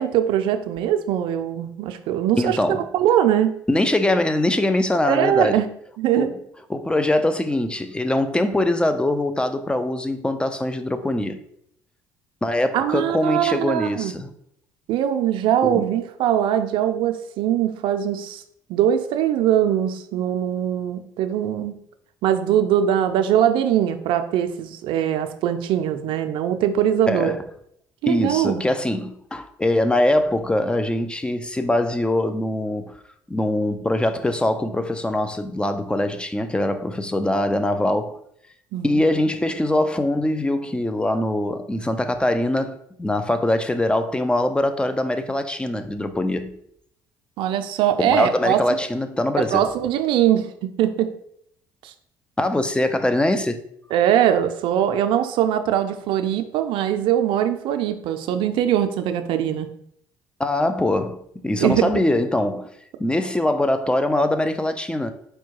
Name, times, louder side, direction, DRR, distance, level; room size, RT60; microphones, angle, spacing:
voice 1, 0.0-3.5 5.1-5.7 6.0-6.3 12.7-14.1 14.9-18.4 18.7-21.7 22.2-27.3 28.0-28.6 38.7-39.0 47.4-48.8 49.4-51.1 51.8-51.9 53.9-59.7 61.6-62.0, right 10 dB, 70° right, 0.5 m, -21 dB
voice 2, 2.4-2.9 3.7-5.6 6.2-6.4 6.7-11.4 12.4-14.3 15.6-15.9 27.1-27.4 28.1-33.0 33.3-38.2 38.8-46.6 48.0-49.6 52.4-53.7 60.4-62.7 63.0-65.1, left 1 dB, 10° left, 0.5 m, -22 dB
4.6 x 2.2 x 4.6 m
supercardioid pair, 70°, 9 cm